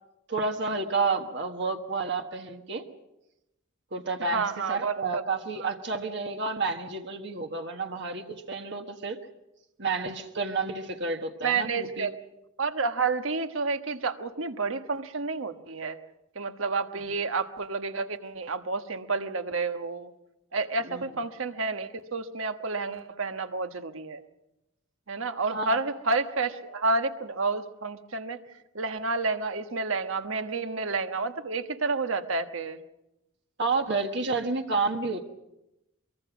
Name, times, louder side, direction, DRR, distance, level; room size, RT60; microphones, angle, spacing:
voice 1, 0.3-2.9 3.9-9.2 9.8-12.1 20.9-21.0 25.5-25.8 33.6-35.3, right 3 dB, 55° right, 4 dB, 1.4 m, -30 dB
voice 2, 4.3-5.2 5.6-5.7 11.4-12.2 12.6-16.0 16.3-20.1 20.5-24.2 25.1-28.4 28.7-32.8, right 4 dB, 75° right, 8 dB, 1.3 m, -30 dB
23.5 x 23.0 x 6.1 m, 0.91 s
head